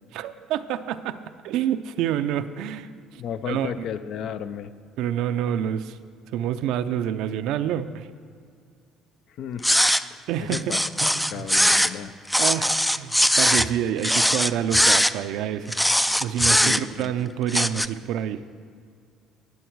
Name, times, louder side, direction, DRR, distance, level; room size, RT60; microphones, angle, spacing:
voice 1, 0.1-1.2 1.4-3.2 3.5-3.7 5.0-6.0 6.3-8.1 10.3-10.7 11.0-11.4 12.4-18.4, right 10 dB, 75° right, 11 dB, 0.5 m, -28 dB
voice 2, 3.2-4.7 9.4-9.9 10.4-10.8 11.3-12.1 16.5-17.1, left 8 dB, 65° left, 12 dB, 0.6 m, -33 dB
sound 1, 9.6-10.0 10.5-11.9 12.3-13.7 14.0-15.1 15.7-17.0 17.5-17.9, equal, ahead, 0.3 m, -20 dB
20.0 x 7.2 x 4.6 m, 2.2 s
cardioid pair, 110°, 0 cm